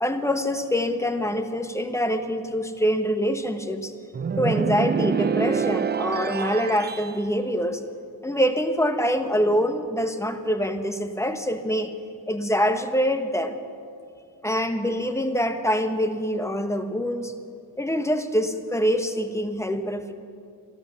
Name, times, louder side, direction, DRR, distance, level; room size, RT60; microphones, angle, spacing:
voice 1, 0.0-3.9 4.4-7.8 8.2-11.9 12.3-13.6 14.4-17.3 17.8-20.1, equal, 5° left, 8 dB, 1.3 m, -25 dB
sound 1, 4.1-7.2, right 6 dB, 25° right, 0.4 m, -26 dB
14.0 x 12.5 x 7.1 m, 2.3 s
cardioid pair, 50°, 44 cm